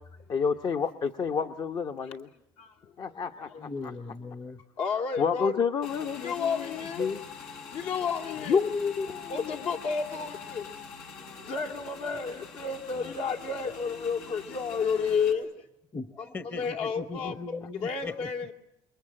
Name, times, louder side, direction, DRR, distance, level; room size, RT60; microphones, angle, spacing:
voice 1, 0.3-2.3 3.0-3.9 5.2-7.2 8.5-9.6, left 6 dB, 45° left, 6 dB, 1.1 m, -29 dB
voice 2, 3.6-4.6 15.9-18.5, left 3 dB, 20° left, 12 dB, 1.0 m, -39 dB
voice 3, 4.8-5.5 6.2-7.1 7.7-8.7 9.3-10.7 11.3-15.5 16.2-17.3 17.8-18.5, left 5 dB, 70° left, 4 dB, 2.8 m, -31 dB
Motorcycle / Engine, 5.8-15.3, left 6 dB, 90° left, 4.2 m, -44 dB
28.5 x 22.5 x 8.8 m, 0.79 s
cardioid pair, 120°, 10 cm